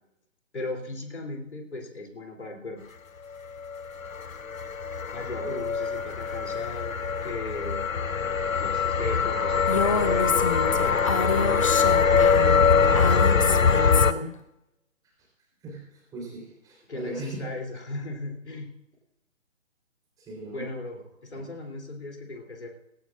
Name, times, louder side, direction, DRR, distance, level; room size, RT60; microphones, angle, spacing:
voice 1, 0.5-2.8 5.1-7.0 7.2-7.8 8.6-10.5 10.8-14.3 16.9-18.7 20.5-22.7, left 2 dB, 55° left, 2 dB, 3.2 m, -37 dB
sound 1, 3.6-14.1, left 5 dB, 85° left, 0.8 m, -23 dB
Female speech woman speaking, 9.7-14.3, left 4 dB, 25° left, 0.7 m, -28 dB
voice 2, 15.6-17.4 20.2-20.7 21.3-21.5, right 2 dB, 10° right, -3 dB, 3.9 m, -39 dB
19.0 x 17.0 x 2.5 m, 0.87 s
figure-of-eight pair, 140°, 39 cm